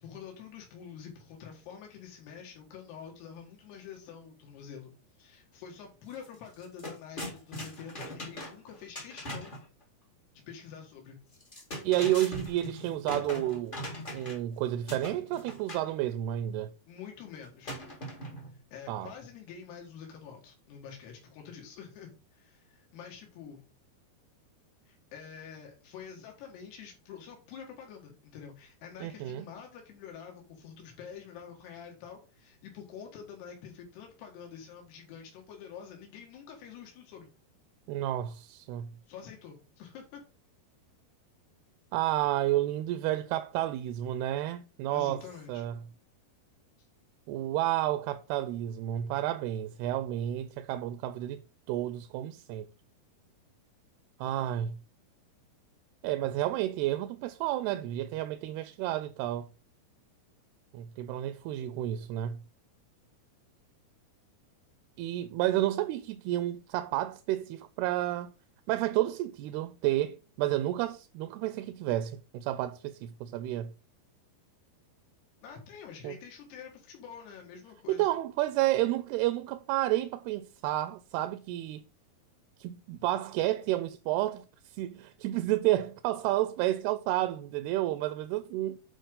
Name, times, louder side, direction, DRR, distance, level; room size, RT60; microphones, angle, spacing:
voice 1, 0.0-4.9 5.2-9.6 10.5-11.2 16.9-17.8 18.7-23.7 24.9-37.3 39.1-40.2 44.9-45.7 75.4-78.1, left 7 dB, 90° left, 3.8 m, -47 dB
sound 1, 6.1-6.3 6.5-9.6 11.3-14.5 14.9-15.9 17.6-18.6, equal, 40° left, 0.7 m, -40 dB
voice 2, 11.8-13.8 14.1-16.7 18.9-19.1 29.0-29.5 37.9-38.9 41.9-45.2 45.5-45.7 47.3-51.4 51.7-52.7 54.2-54.8 56.0-59.5 60.7-62.4 65.0-68.3 68.7-73.7 76.0-76.2 77.9-81.8 82.6-88.8, right 14 dB, 85° right, 2.5 m, -31 dB
9.0 x 4.8 x 3.7 m
omnidirectional pair, 4.6 m